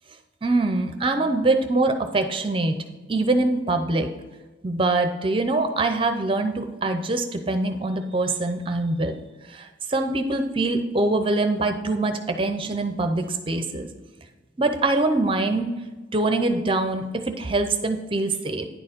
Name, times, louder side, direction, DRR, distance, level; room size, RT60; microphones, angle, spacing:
voice 1, 0.4-2.7 3.1-4.1 4.6-9.1 9.5-13.9 14.6-15.7 16.1-18.6, right 2 dB, 30° right, 6 dB, 0.6 m, -24 dB
10.0 x 4.5 x 5.2 m, 1.2 s
head